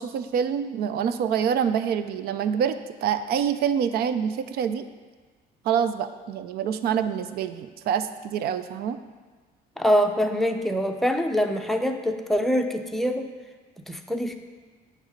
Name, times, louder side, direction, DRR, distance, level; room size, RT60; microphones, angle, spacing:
voice 1, 0.0-4.8 5.6-9.0, right 8 dB, 70° right, 11 dB, 0.5 m, -26 dB
voice 2, 9.8-13.3 13.9-14.4, equal, ahead, 4 dB, 0.5 m, -24 dB
8.9 x 3.2 x 6.5 m, 1.4 s
cardioid pair, 110°, 17 cm